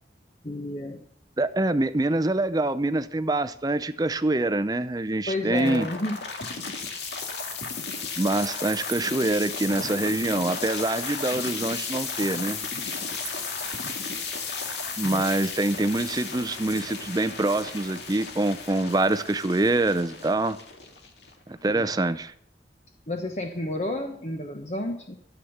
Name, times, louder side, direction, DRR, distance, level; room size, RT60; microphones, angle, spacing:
voice 1, 0.4-1.0 5.3-6.2 15.0-15.2 21.7-21.9 23.1-25.2, left 2 dB, 40° left, 3 dB, 1.0 m, -31 dB
voice 2, 1.4-5.9 8.2-12.6 15.0-20.6 21.5-22.3, right 2 dB, 20° right, 13 dB, 0.5 m, -25 dB
sound 1, 5.5-21.6, left 4 dB, 75° left, 2.1 m, -34 dB
sound 2, 8.4-9.1 10.1-10.3 11.6-11.8 12.9-13.5, right 14 dB, 65° right, 1.2 m, -43 dB
13.0 x 8.1 x 7.1 m, 0.67 s
head